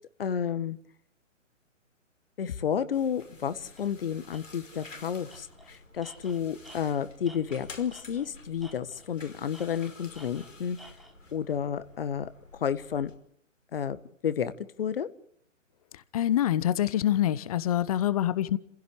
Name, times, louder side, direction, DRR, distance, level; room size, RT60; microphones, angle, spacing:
voice 1, 0.2-0.8 2.4-10.8 11.3-12.3 12.6-13.1 13.7-15.1, left 8 dB, 45° left, 1.5 m, -31 dB
sound 1, 2.9-13.1, left 3 dB, 75° left, 5.3 m, -50 dB
Tools, 3.8-3.9 4.3-4.4 4.8-5.0 5.3-8.3 8.6-9.1 9.5-11.2, right 1 dB, ahead, 1.3 m, -52 dB
voice 2, 16.1-18.6, left 12 dB, 30° left, 0.9 m, -25 dB
29.5 x 16.0 x 8.2 m
figure-of-eight pair, 130°, 38 cm